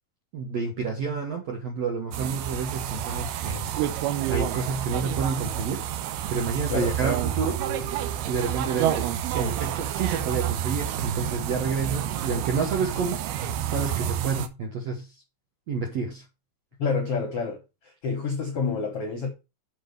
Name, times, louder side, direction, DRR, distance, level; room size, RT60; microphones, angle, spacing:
voice 1, 0.3-3.7 4.3-5.9 6.3-7.6 8.3-13.3 13.7-15.1 15.7-16.2, right 5 dB, 65° right, 1.6 m, -29 dB
sound 1, 2.1-14.5, right 10 dB, 85° right, 2.8 m, -29 dB
voice 2, 16.8-19.3, left 5 dB, 70° left, 1.4 m, -28 dB
7.6 x 4.5 x 5.2 m
omnidirectional pair, 4.4 m